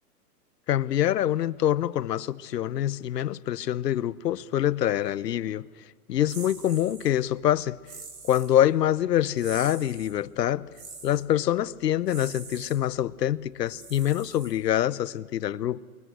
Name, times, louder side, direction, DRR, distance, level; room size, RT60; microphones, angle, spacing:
voice 1, 0.7-5.7 6.1-7.8 8.2-10.7 11.0-15.8, left 11 dB, 85° left, 1.0 m, -25 dB
sound 1, 6.3-7.1 7.9-8.5 9.4-10.1 10.7-11.2 12.1-12.8 13.7-14.8, right 5 dB, 40° right, 4.9 m, -44 dB
28.0 x 23.5 x 8.2 m
hypercardioid pair, 140°, 47 cm